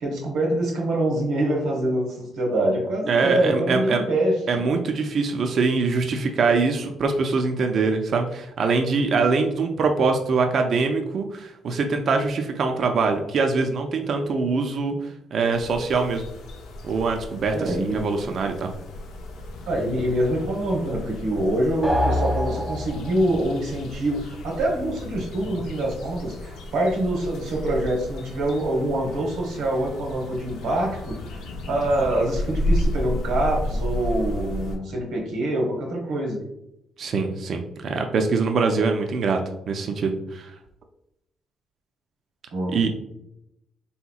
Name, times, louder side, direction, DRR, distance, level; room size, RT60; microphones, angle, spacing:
voice 1, 0.0-4.6 17.5-18.3 19.7-36.4 42.5-42.9, right 1 dB, 85° right, 0 dB, 0.9 m, -25 dB
voice 2, 3.1-4.0 4.5-14.9 15.3-16.2 16.8-18.7 37.0-39.4 39.7-40.5 42.7-42.9, right 4 dB, 60° right, 4 dB, 0.3 m, -23 dB
sound 1, 15.5-34.7, left 1 dB, 85° left, 0.5 m, -33 dB
sound 2, 21.8-23.3, left 1 dB, 10° right, 0.7 m, -25 dB
3.5 x 2.8 x 2.3 m, 0.82 s
cardioid pair, 90°, 0 cm